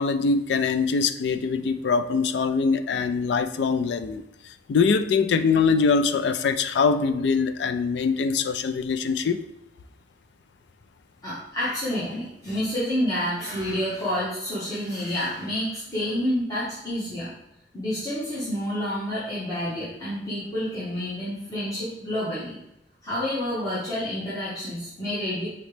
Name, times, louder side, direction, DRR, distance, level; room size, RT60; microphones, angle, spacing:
voice 1, 0.0-4.2 4.7-9.4, left 5 dB, 70° left, 11 dB, 0.3 m, -23 dB
voice 2, 11.2-17.3 17.7-22.6 23.0-25.5, equal, 20° left, -11 dB, 1.1 m, -29 dB
5.2 x 2.9 x 3.2 m, 0.87 s
head